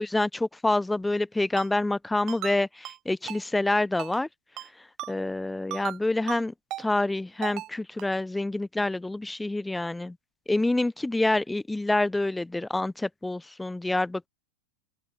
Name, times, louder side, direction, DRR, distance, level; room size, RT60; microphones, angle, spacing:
voice 1, 0.0-4.3 5.1-10.1 10.5-14.3, left 2 dB, 5° left, 1.0 m, -27 dB
Ringtone, 1.6-1.7 2.3-2.6 2.8-3.0 3.3-3.4 4.0-4.3 4.6-4.7 5.0-5.1 5.7-6.0 6.3-6.4 6.7-6.8 7.4-7.7 8.0-8.1, right 16 dB, 35° right, 7.6 m, -36 dB
open air
figure-of-eight pair, 90°, 0 cm